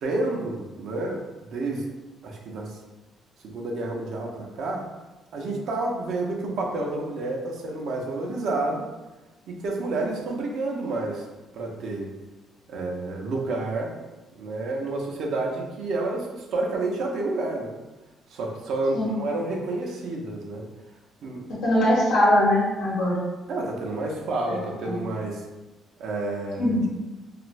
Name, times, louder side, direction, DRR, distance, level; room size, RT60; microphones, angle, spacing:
voice 1, 0.0-1.8 2.2-2.8 3.4-4.9 5.3-8.9 9.5-11.3 11.5-12.1 12.7-13.9 14.4-17.7 18.3-20.6 21.2-21.5 23.5-25.5 26.0-26.9, right 2 dB, 75° right, 0 dB, 0.5 m, -29 dB
voice 2, 21.6-23.2 24.5-24.6 24.8-25.0 26.6-26.9, left 1 dB, 90° left, -8 dB, 0.9 m, -21 dB
2.5 x 2.4 x 3.1 m, 1.1 s
cardioid pair, 95°, 0 cm